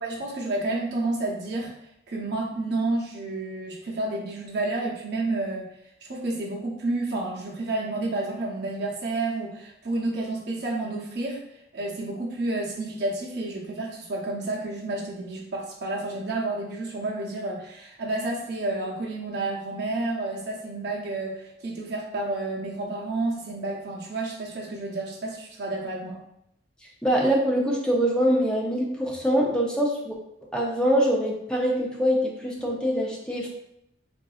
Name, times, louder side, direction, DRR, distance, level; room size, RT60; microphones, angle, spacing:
voice 1, 0.0-1.7 2.1-5.7 6.0-11.4 11.7-26.2, right 2 dB, 60° right, -2 dB, 0.7 m, -30 dB
voice 2, 27.0-30.2 30.5-33.5, equal, 5° left, -2 dB, 0.5 m, -24 dB
3.8 x 2.5 x 2.4 m, 0.78 s
head